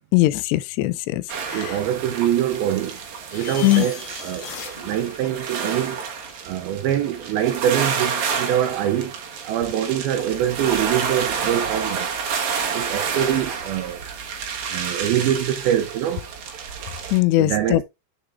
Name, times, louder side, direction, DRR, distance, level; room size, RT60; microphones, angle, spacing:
voice 1, 0.1-1.7 3.6-3.9 17.1-17.8, left 18 dB, 85° left, 2.8 m, -20 dB
sound 1, 1.3-17.2, right 6 dB, 60° right, 2.2 m, -29 dB
voice 2, 1.5-3.0 3.3-6.0 6.4-9.2 9.5-12.1 12.7-14.0 14.7-16.3 17.4-17.8, right 11 dB, 80° right, 2.3 m, -24 dB
sound 2, 3.3-6.3, left 5 dB, 50° left, 2.3 m, -37 dB
7.5 x 6.7 x 2.5 m
omnidirectional pair, 4.9 m